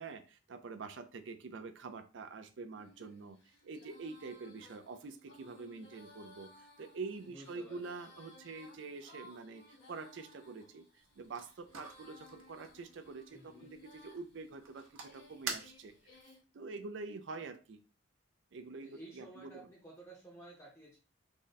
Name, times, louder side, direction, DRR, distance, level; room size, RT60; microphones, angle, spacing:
voice 1, 0.0-15.9 16.5-17.8 18.5-19.7, right 4 dB, 65° right, 9 dB, 0.4 m, -46 dB
Female singing, 2.8-16.4, left 1 dB, 75° left, 1.6 m, -60 dB
voice 2, 7.2-8.0 13.3-13.7 18.8-21.0, right 1 dB, 15° left, -3 dB, 0.7 m, -53 dB
sound 1, 11.0-16.2, right 5 dB, 80° right, 0.8 m, -48 dB
3.7 x 2.1 x 3.9 m, 0.34 s
head